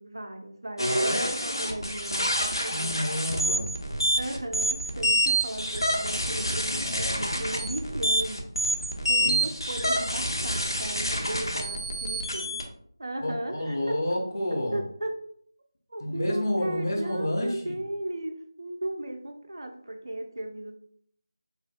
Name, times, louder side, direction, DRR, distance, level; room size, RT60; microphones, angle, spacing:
voice 1, 0.0-3.0 4.2-8.7 9.0-12.6 13.0-13.9 14.7-15.1 15.9-20.8, right 1 dB, 60° right, 4 dB, 0.8 m, -36 dB
sound 1, 0.8-12.6, equal, 90° left, 1.1 m, -27 dB
voice 2, 2.6-3.7 6.7-7.3 8.9-9.5 13.2-14.8 16.0-17.7, left 1 dB, 50° left, -1 dB, 1.0 m, -30 dB
6.8 x 2.6 x 2.3 m, 0.64 s
figure-of-eight pair, 165°, 2 cm